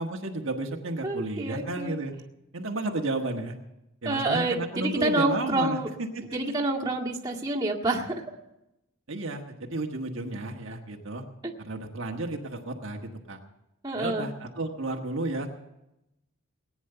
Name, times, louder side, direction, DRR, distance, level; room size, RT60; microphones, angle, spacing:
voice 1, 0.0-2.1 2.5-3.5 4.0-5.8 6.1-6.5 9.1-11.2 11.6-13.4 13.9-15.5, right 2 dB, 60° right, 2 dB, 1.5 m, -32 dB
voice 2, 1.0-2.0 4.1-5.9 6.3-8.2 11.4-11.5 13.8-14.3, right 2 dB, 20° right, -3 dB, 1.9 m, -28 dB
19.0 x 9.7 x 6.8 m, 0.89 s
head